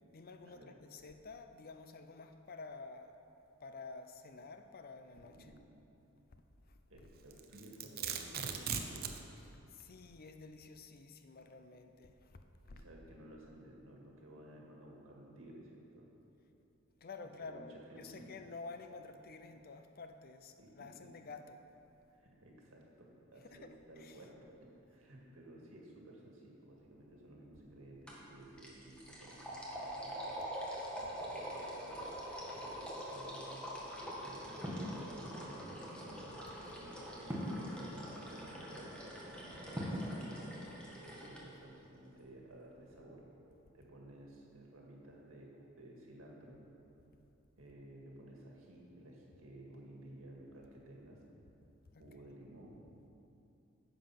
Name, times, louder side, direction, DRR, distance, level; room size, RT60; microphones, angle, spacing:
voice 1, 0.1-3.2 3.6-5.5 6.7-7.3 9.4-12.9 17.0-21.6 23.4-24.3 31.0-31.1 51.9-52.2, left 3 dB, 50° left, 7 dB, 0.6 m, -51 dB
voice 2, 6.9-9.1 12.6-16.1 17.2-18.3 20.6-20.9 22.1-24.5 24.9-30.3 31.0-32.0 32.5-36.2 36.7-39.1 39.6-40.4 40.9-43.2 43.7-46.6 47.6-51.2 52.0-52.8, right 1 dB, 90° right, -2 dB, 2.0 m, -55 dB
Domestic sounds home sounds, 7.3-9.2, right 7 dB, 50° right, 0.7 m, -38 dB
sound 1, 28.1-28.3 28.6-41.4, equal, 5° left, 1.6 m, -45 dB
sound 2, 34.0-40.5, equal, 15° right, 1.3 m, -44 dB
10.0 x 7.5 x 5.8 m, 2.9 s
head